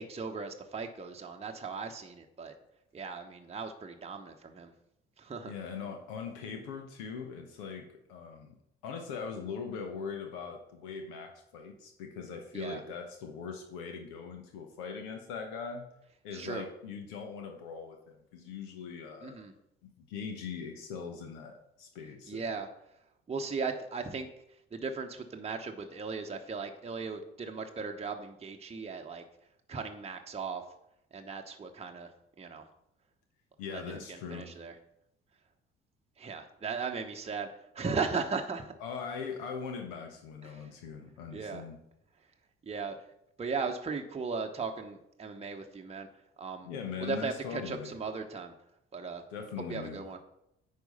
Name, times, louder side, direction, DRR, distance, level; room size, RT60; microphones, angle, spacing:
voice 1, 0.0-2.6 2.9-4.7 5.2-5.5 12.5-12.8 16.3-16.7 19.2-19.5 22.3-22.7 23.3-24.3 24.7-29.2 29.7-30.6 31.1-32.1 32.4-32.7 33.7-34.8 36.2-38.7 40.4-40.7 41.3-41.6 42.6-43.0 43.4-46.1 46.4-46.7 47.0-48.5 48.9-49.2 49.7-50.2, right 4 dB, 20° right, 3 dB, 1.0 m, -37 dB
voice 2, 5.4-8.6 8.8-15.9 16.2-19.4 19.8-22.4 33.6-34.5 38.8-41.8 46.6-47.9 49.3-50.0, left 5 dB, 70° left, 4 dB, 1.1 m, -41 dB
9.3 x 4.7 x 5.4 m, 0.78 s
figure-of-eight pair, 45°, 30 cm